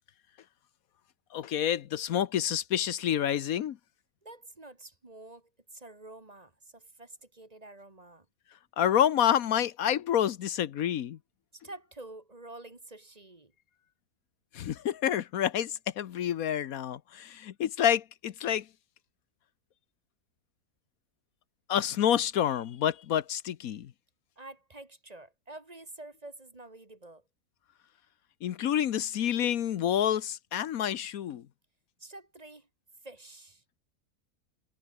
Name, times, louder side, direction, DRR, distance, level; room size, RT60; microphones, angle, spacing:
voice 1, 1.3-3.8 8.8-11.2 14.5-18.7 21.7-23.9 28.4-31.4, left 10 dB, 75° left, 1.3 m, -28 dB
voice 2, 4.2-8.3 11.5-13.5 21.9-22.0 24.4-27.2 32.0-32.7 33.0-33.6, right 2 dB, 25° right, 1.9 m, -48 dB
omnidirectional pair, 1.5 m